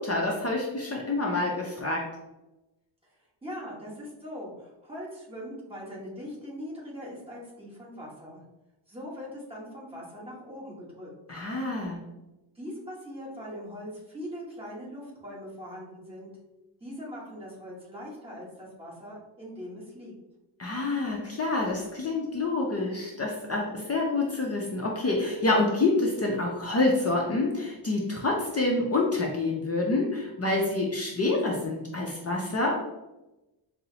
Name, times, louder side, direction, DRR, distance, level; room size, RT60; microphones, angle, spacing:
voice 1, 0.0-2.1 11.3-12.0 20.6-32.8, left 2 dB, 35° left, -1 dB, 0.5 m, -27 dB
voice 2, 3.1-8.4 8.9-11.1 12.5-16.3 16.8-20.1, equal, 10° right, -6 dB, 1.2 m, -41 dB
5.3 x 2.0 x 2.7 m, 0.99 s
wide cardioid pair, 145°, 48 cm